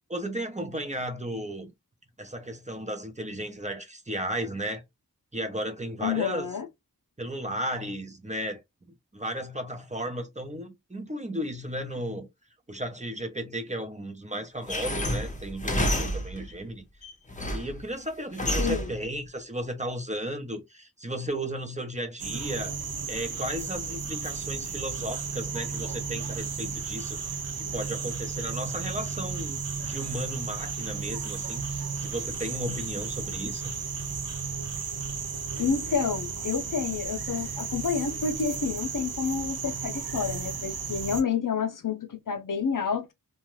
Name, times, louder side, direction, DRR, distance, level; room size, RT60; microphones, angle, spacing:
voice 1, 0.1-1.7 2.2-4.8 5.3-6.5 7.2-8.6 9.1-12.3 12.7-16.8 17.5-22.8 23.1-33.7, equal, 20° right, 0.7 m, -34 dB
voice 2, 6.0-6.7 18.6-18.9 35.6-43.1, left 6 dB, 65° left, 0.6 m, -29 dB
sound 1, 14.7-16.5 17.0-17.8 18.4-19.0, equal, 20° left, 0.7 m, -29 dB
sound 2, 22.2-41.2, right 5 dB, 90° right, 0.6 m, -34 dB
2.5 x 2.2 x 3.0 m
wide cardioid pair, 40°, 35 cm